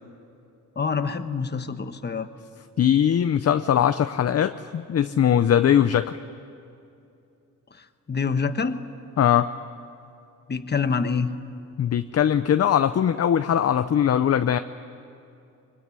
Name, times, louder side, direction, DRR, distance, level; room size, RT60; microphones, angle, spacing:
voice 1, 0.8-2.3 8.1-8.8 10.5-11.3, left 5 dB, 30° left, 9 dB, 1.3 m, -26 dB
voice 2, 2.8-6.2 9.2-9.5 11.8-14.6, left 9 dB, 50° left, 10 dB, 0.6 m, -20 dB
24.5 x 24.5 x 9.8 m, 2.7 s
wide cardioid pair, 140°, 32 cm